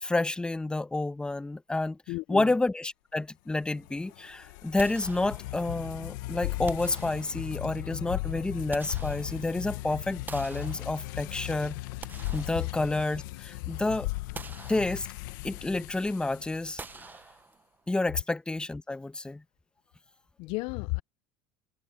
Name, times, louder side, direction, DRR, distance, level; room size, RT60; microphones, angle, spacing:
voice 1, 0.0-2.0 2.3-11.8 12.3-14.1 14.7-15.1 15.4-17.1 17.9-19.4, left 2 dB, 10° left, 1.0 m, -29 dB
voice 2, 2.1-2.5 13.7-13.8 20.4-21.0, left 25 dB, 65° left, 0.4 m, -33 dB
sound 1, 3.7-17.1, left 18 dB, 85° left, 1.1 m, -38 dB
sound 2, 4.8-5.8 6.7-7.7 8.4-9.7 10.3-11.4 11.8-13.3 13.7-13.8 14.3-15.4 16.8-17.9, right 4 dB, 20° right, 0.8 m, -46 dB
supercardioid pair, 110°, 10 cm